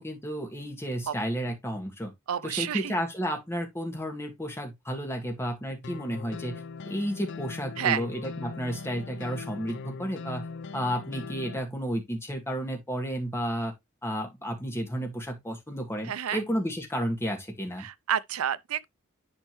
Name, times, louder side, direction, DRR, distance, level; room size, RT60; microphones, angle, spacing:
voice 1, 0.0-2.1 2.4-10.5 10.7-13.7 14.0-17.9, equal, 10° left, 1.9 m, -32 dB
voice 2, 2.3-2.9 7.8-8.0 16.0-16.4 17.8-18.9, right 9 dB, 75° right, 0.5 m, -29 dB
sound 1, 5.8-11.6, left 4 dB, 55° left, 0.5 m, -40 dB
10.5 x 4.4 x 3.1 m
head